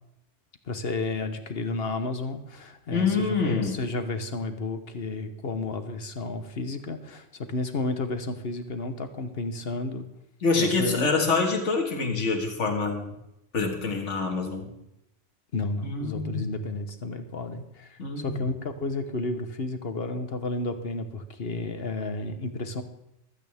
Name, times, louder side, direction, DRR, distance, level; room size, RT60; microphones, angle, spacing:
voice 1, 0.7-10.1 10.6-11.1 15.5-22.8, left 2 dB, 55° left, 8 dB, 1.3 m, -32 dB
voice 2, 2.9-3.8 10.4-13.1 13.5-14.7 15.8-16.5 18.0-18.4, left 4 dB, 75° left, 3 dB, 2.2 m, -26 dB
15.5 x 13.5 x 3.5 m, 0.84 s
omnidirectional pair, 1.2 m